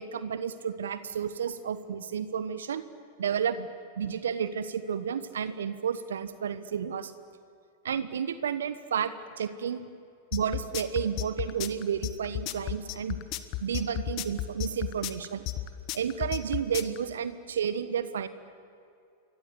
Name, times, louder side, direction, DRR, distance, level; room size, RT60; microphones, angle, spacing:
voice 1, 0.0-2.8 3.2-3.7 4.0-7.1 7.8-9.8 10.3-13.2 13.6-15.4 15.9-18.3, right 7 dB, 70° right, 13 dB, 1.2 m, -31 dB
sound 1, 10.3-17.0, left 15 dB, 45° left, 1.5 m, -33 dB
27.5 x 23.0 x 8.3 m, 2.4 s
figure-of-eight pair, 95°, 0 cm